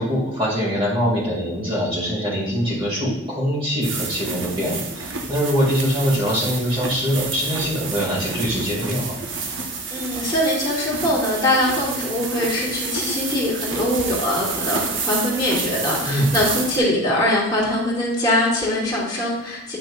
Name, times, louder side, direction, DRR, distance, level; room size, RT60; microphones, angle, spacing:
voice 1, 0.0-9.2 16.0-16.3, equal, 25° right, -6 dB, 2.0 m, -23 dB
sound 1, 3.8-16.8, right 4 dB, 60° right, 0.9 m, -29 dB
voice 2, 9.9-19.8, left 1 dB, 20° left, -5 dB, 2.1 m, -22 dB
8.9 x 5.9 x 2.4 m, 0.86 s
head